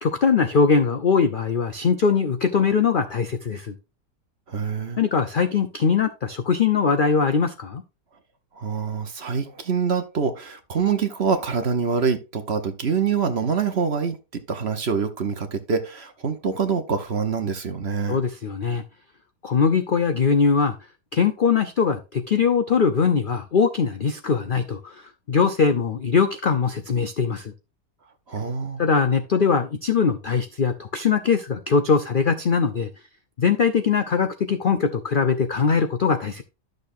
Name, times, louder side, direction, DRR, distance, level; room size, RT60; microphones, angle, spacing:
voice 1, 0.0-3.7 5.0-7.8 18.1-18.8 19.4-20.8 21.1-25.0 25.3-27.5 28.8-32.9 33.4-36.4, left 5 dB, 65° left, 0.5 m, -21 dB
voice 2, 4.5-5.0 8.6-18.2 28.3-28.8, right 6 dB, 45° right, 1.0 m, -25 dB
12.0 x 6.6 x 2.6 m
omnidirectional pair, 1.8 m